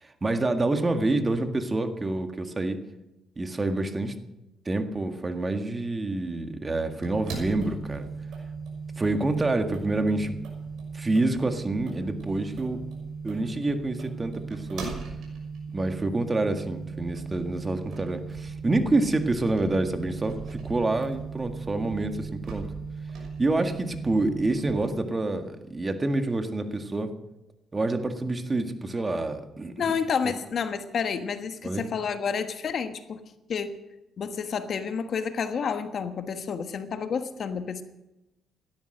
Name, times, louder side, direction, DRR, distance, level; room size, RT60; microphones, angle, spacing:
voice 1, 0.0-2.8 3.4-4.1 4.7-8.1 9.0-10.4 10.9-12.8 13.2-14.9 15.7-22.6 23.4-27.1 27.7-29.8 30.2-30.3 31.6-31.9, right 2 dB, 25° right, 6 dB, 1.8 m, -27 dB
sound 1, 7.0-24.9, right 5 dB, 75° right, 6.1 m, -37 dB
voice 2, 29.8-33.2 33.5-33.8 34.2-37.8, left 6 dB, 55° left, 8 dB, 1.4 m, -30 dB
17.0 x 12.5 x 6.6 m, 0.95 s
cardioid pair, 90°, 0 cm